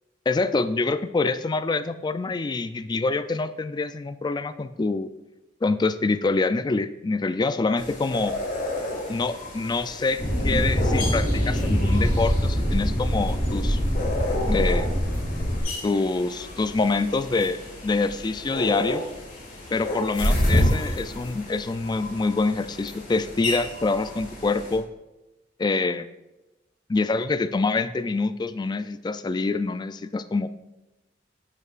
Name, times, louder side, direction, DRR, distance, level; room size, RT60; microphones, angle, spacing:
voice 1, 0.3-5.1 5.6-8.3 9.1-13.8 14.5-14.9 15.8-19.0 19.7-24.9 25.6-26.1 26.9-30.5, left 3 dB, 25° left, 12 dB, 0.3 m, -26 dB
sound 1, 7.8-24.8, left 1 dB, 45° left, 2.1 m, -30 dB
sound 2, 10.2-15.6, equal, 75° left, 2.8 m, -24 dB
12.0 x 5.4 x 2.5 m, 1.0 s
head